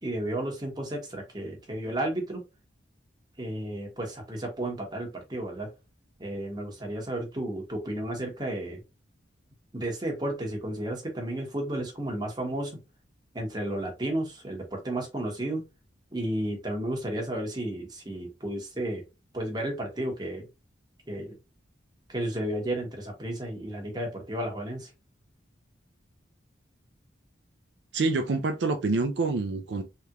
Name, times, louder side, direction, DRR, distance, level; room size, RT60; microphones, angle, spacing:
voice 1, 0.0-2.4 3.4-5.7 6.2-8.8 9.7-12.7 13.3-15.6 16.1-19.0 19.3-20.5 21.1-21.4 22.1-24.9, right 1 dB, 20° right, 1.0 m, -32 dB
voice 2, 27.9-29.8, right 3 dB, 70° right, 0.4 m, -27 dB
3.4 x 2.9 x 2.3 m
head